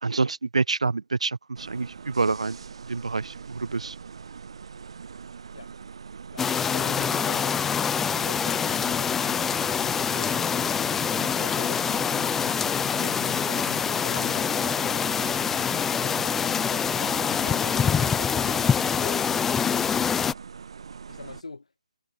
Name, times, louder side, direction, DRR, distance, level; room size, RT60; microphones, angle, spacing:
voice 1, 0.0-2.6 2.9-4.0, right 4 dB, 70° right, 3.9 m, -27 dB
sound 1, 1.6-21.4, right 6 dB, 55° right, 7.0 m, -42 dB
voice 2, 6.3-7.6 8.1-10.5 11.1-15.1 16.0-19.2 21.1-21.7, left 3 dB, 75° left, 8.0 m, -43 dB
sound 2, 6.4-20.3, left 7 dB, 5° left, 0.5 m, -25 dB
figure-of-eight pair, 150°, 3 cm